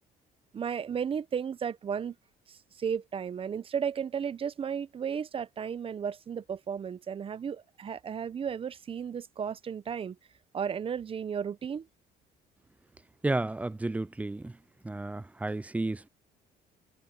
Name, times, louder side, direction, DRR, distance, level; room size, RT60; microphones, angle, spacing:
voice 1, 0.5-2.1 2.5-10.2 10.5-11.9, right 7 dB, 35° right, 0.7 m, -34 dB
voice 2, 13.2-14.6 14.8-16.1, right 2 dB, 10° right, 0.3 m, -32 dB
cardioid pair, 110°, 17 cm